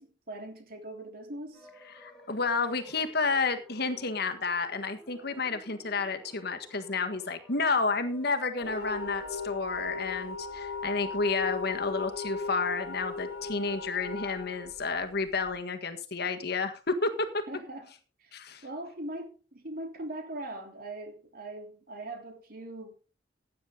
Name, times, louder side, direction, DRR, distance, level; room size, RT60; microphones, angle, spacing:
voice 1, 0.0-1.7 17.5-17.9 18.2-22.9, right 1 dB, 50° right, 3.3 m, -41 dB
sound 1, 1.5-9.6, equal, 5° left, 3.2 m, -53 dB
voice 2, 2.0-17.4 18.3-18.6, left 4 dB, 55° left, 1.6 m, -31 dB
sound 2, 8.6-15.5, left 3 dB, 85° left, 2.0 m, -37 dB
16.0 x 9.5 x 3.8 m
head